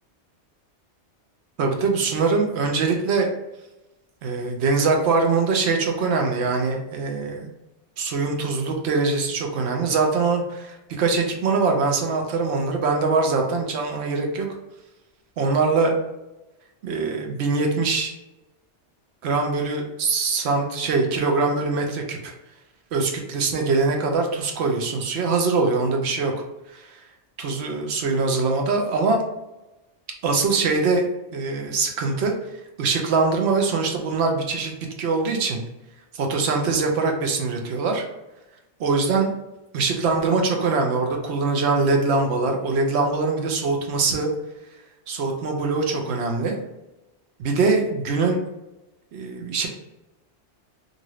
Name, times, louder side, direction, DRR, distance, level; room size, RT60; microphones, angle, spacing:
voice 1, 1.6-3.3 4.2-7.5 8.0-14.5 15.4-16.0 16.8-18.1 19.2-22.3 22.9-26.3 26.7-26.9 27.4-29.2 30.2-31.0 31.3-32.3 32.8-34.7 35.0-35.6 36.1-38.0 38.8-39.3 39.7-44.3 45.1-46.6 47.4-48.4 49.1-49.7, right 4 dB, 75° right, 2 dB, 0.9 m, -23 dB
2.7 x 2.5 x 3.0 m, 0.99 s
omnidirectional pair, 1.2 m